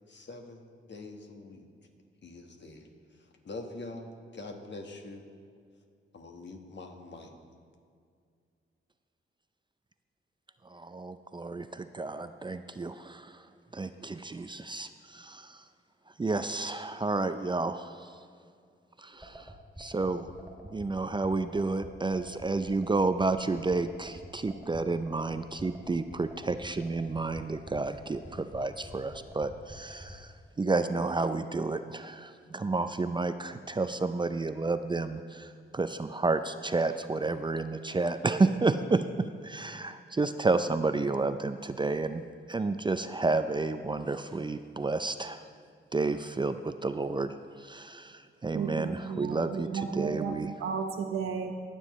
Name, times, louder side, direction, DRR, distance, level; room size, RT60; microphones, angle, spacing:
voice 1, 0.1-1.6 2.2-2.9 3.4-5.2 6.1-7.3, left 2 dB, 55° left, 3 dB, 1.4 m, -44 dB
voice 2, 10.6-13.5 13.7-15.6 16.2-18.2 19.0-19.5 19.8-20.3 20.6-42.2 42.5-45.5 45.9-50.5, right 3 dB, 20° right, 10 dB, 0.4 m, -31 dB
sound 1, 19.2-30.2, equal, 5° right, 2.1 m, -47 dB
voice 3, 48.5-51.5, right 6 dB, 85° right, 6 dB, 0.8 m, -33 dB
20.5 x 7.1 x 3.1 m, 2.2 s
cardioid pair, 65°, 21 cm